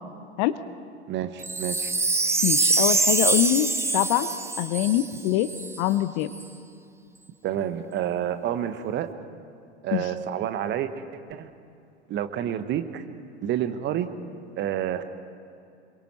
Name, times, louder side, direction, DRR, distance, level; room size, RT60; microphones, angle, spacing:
voice 1, 1.1-1.9 7.4-9.1 9.8-11.0 11.3-11.5 12.1-13.0 13.4-14.1 14.6-15.0, right 10 dB, 35° right, 10 dB, 1.2 m, -29 dB
Wind chime, 1.4-5.8 6.3-6.4, right 3 dB, 10° right, 1.0 m, -24 dB
voice 2, 2.4-4.3 4.6-5.5 5.8-6.3 9.9-10.0, left 13 dB, 45° left, 13 dB, 0.8 m, -24 dB
27.5 x 22.5 x 4.5 m, 2.5 s
figure-of-eight pair, 85°, 34 cm